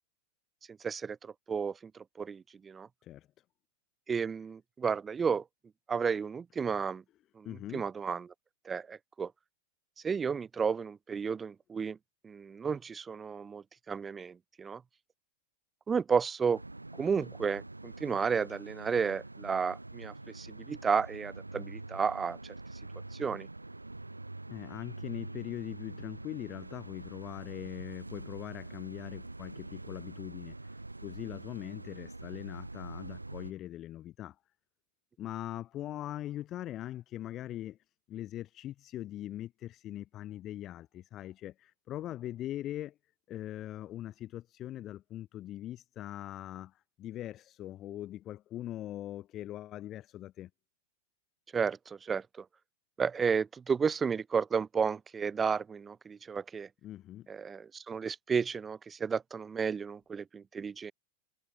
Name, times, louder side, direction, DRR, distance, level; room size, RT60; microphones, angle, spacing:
voice 1, 0.8-2.9 4.1-5.4 5.9-7.0 7.4-7.5 7.7-8.3 8.7-9.3 10.0-12.0 12.2-14.8 15.9-16.6 17.0-22.4 23.1-23.5 51.5-52.5 53.0-56.7 57.3-60.9, right 6 dB, 20° right, 1.9 m, -32 dB
voice 2, 7.4-7.8 24.5-34.4 35.2-37.8 38.1-43.0 43.3-50.5 56.8-57.3, left 13 dB, 30° left, 1.9 m, -41 dB
sound 1, 16.5-33.5, right 2 dB, 85° right, 2.1 m, -45 dB
figure-of-eight pair, 90°, 0 cm